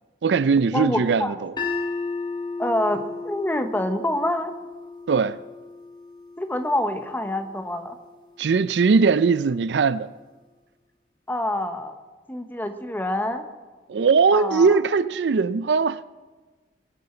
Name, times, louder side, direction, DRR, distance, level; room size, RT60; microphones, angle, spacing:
voice 1, 0.2-1.5 5.1-5.4 8.4-10.1 13.9-16.0, right 5 dB, 75° right, 0.4 m, -20 dB
voice 2, 0.7-1.4 2.6-4.5 6.4-8.0 11.3-11.9 12.3-13.4 14.3-14.8, left 1 dB, 10° left, 1.0 m, -26 dB
sound 1, 1.6-7.7, left 4 dB, 25° left, 1.5 m, -34 dB
21.0 x 9.6 x 4.4 m
head